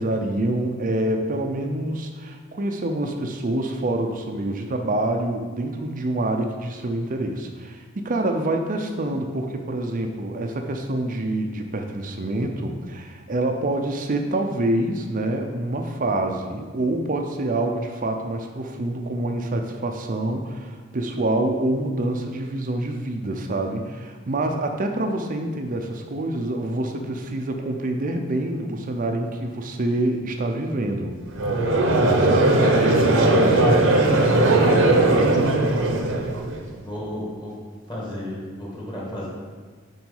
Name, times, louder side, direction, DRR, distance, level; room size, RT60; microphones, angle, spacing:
voice 1, 0.0-31.2 32.2-32.7, right 1 dB, 40° right, 3 dB, 0.6 m, -26 dB
Conversation / Crowd, 31.3-36.6, right 2 dB, 65° right, 0.9 m, -18 dB
voice 2, 32.6-33.8 34.5-35.3 36.7-37.5 37.9-39.3, left 1 dB, 20° left, -5 dB, 2.0 m, -31 dB
5.9 x 4.7 x 5.5 m, 1.5 s
head